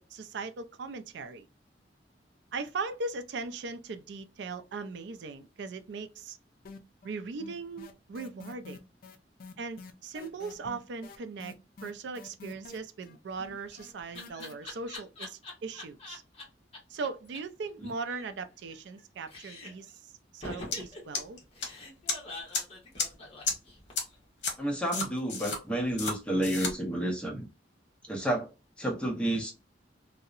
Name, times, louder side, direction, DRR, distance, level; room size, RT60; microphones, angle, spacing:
voice 1, 0.0-1.5 2.5-6.4 7.0-8.8 9.6-16.2 16.9-21.4, right 4 dB, 65° right, 0.4 m, -39 dB
sound 1, 6.6-7.1 7.4-14.5, left 4 dB, 55° left, 0.4 m, -47 dB
Laughter, 13.3-16.4 16.7-16.8 17.0-17.1 17.3-17.4 17.7-19.0 19.3-19.9 20.4-24.2, left 2 dB, 35° left, 1.0 m, -44 dB
sound 2, 20.7-20.8 21.1-21.7 22.1-22.2 22.5-22.6 23.0-23.1 23.5-23.6 24.0-24.1 24.4-24.5 24.9-25.6 26.0-26.1 26.4-26.7, left 4 dB, 70° left, 0.9 m, -30 dB
voice 2, 24.6-27.5 28.1-28.5 28.8-29.5, right 1 dB, 5° left, 0.7 m, -30 dB
2.7 x 2.0 x 2.4 m
head